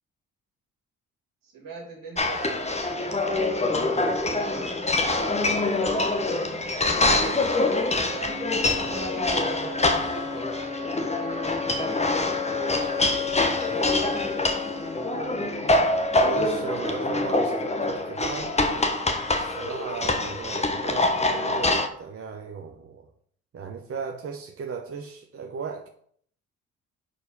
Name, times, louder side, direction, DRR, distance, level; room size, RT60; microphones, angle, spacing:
voice 1, 1.4-6.1 6.8-12.2 12.4-14.0, right 4 dB, 65° right, 0 dB, 2.4 m, -41 dB
sound 1, 2.2-21.9, left 2 dB, 20° left, 1.0 m, -25 dB
Wind instrument woodwind instrument, 8.2-16.2, left 6 dB, 75° left, 1.2 m, -34 dB
voice 2, 16.2-18.6 19.3-23.1 23.5-25.9, right 5 dB, 40° right, 2 dB, 0.8 m, -36 dB
4.7 x 4.1 x 5.3 m, 0.63 s
hypercardioid pair, 45°, 36 cm